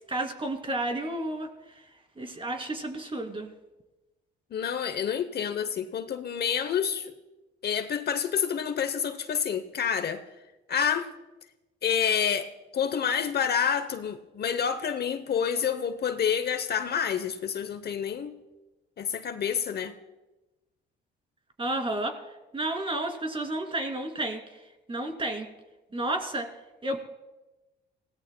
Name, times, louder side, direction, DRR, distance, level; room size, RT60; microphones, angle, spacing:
voice 1, 0.1-1.5 2.2-3.5 21.6-22.2 22.5-24.6 24.9-25.5 25.9-26.5 26.8-27.0, right 1 dB, 25° right, 4 dB, 2.6 m, -31 dB
voice 2, 4.5-7.1 7.6-10.2 10.7-11.1 11.8-18.4 19.0-19.9, left 7 dB, 55° left, 11 dB, 0.9 m, -28 dB
29.5 x 17.5 x 2.2 m, 1.1 s
cardioid pair, 90°, 20 cm